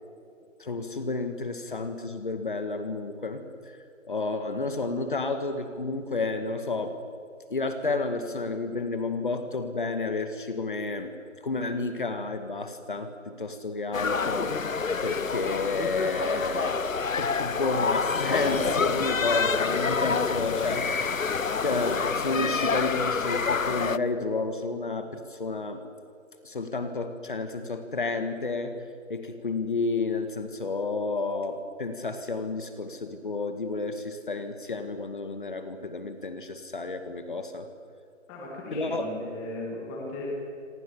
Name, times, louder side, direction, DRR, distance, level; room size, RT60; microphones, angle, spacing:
voice 1, 0.6-3.7 4.1-7.0 7.5-11.1 11.4-14.6 15.0-16.8 17.2-21.2 21.6-25.8 26.4-28.8 29.1-37.7 38.7-39.1, left 3 dB, 40° left, 8 dB, 2.0 m, -31 dB
sound 1, 13.9-24.0, left 5 dB, 85° left, 1.0 m, -27 dB
voice 2, 38.3-40.3, left 2 dB, 5° left, -2 dB, 2.0 m, -37 dB
28.0 x 26.0 x 7.1 m, 2.3 s
figure-of-eight pair, 170°, 39 cm